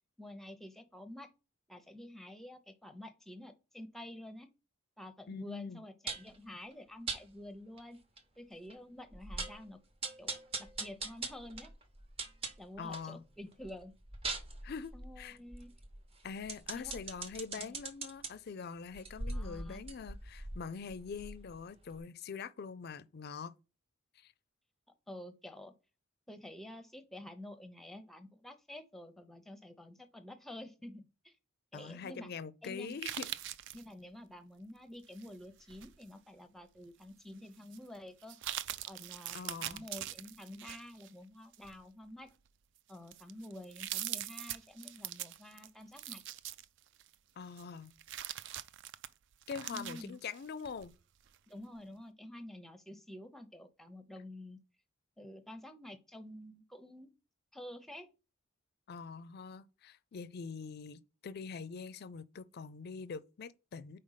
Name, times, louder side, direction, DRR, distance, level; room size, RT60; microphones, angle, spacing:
voice 1, 0.2-1.3 1.7-4.5 5.0-8.0 8.4-9.8 10.2-11.7 12.6-13.9 14.9-15.7 16.7-17.0 17.6-17.7 19.3-19.9 25.1-25.7 26.3-31.4 31.7-32.3 32.6-33.0 33.7-38.4 38.9-42.3 42.9-46.2 49.7-50.2 51.5-54.6 55.2-57.1 57.5-58.1, left 1 dB, ahead, 0.6 m, -49 dB
voice 2, 5.3-5.8 12.8-13.2 14.6-15.4 16.2-23.5 24.2-24.3 31.7-33.3 39.3-39.8 47.4-47.9 49.5-50.9 58.9-64.0, left 5 dB, 50° left, 0.4 m, -44 dB
sound 1, 6.1-6.4 7.1-7.2 7.8-7.9 8.2-8.3 8.7-8.8 9.1-9.6 10.0-13.1 13.5-18.3 18.9-21.6 21.9-22.0, right 3 dB, 30° right, 0.8 m, -41 dB
sound 2, 32.9-33.9 35.1-36.1 36.6-36.7 37.6-37.8 38.2-41.1 41.5-41.8 42.5-42.6 42.9-47.2 47.6-50.9 51.3-51.4, right 12 dB, 60° right, 0.3 m, -42 dB
5.0 x 4.3 x 5.6 m
head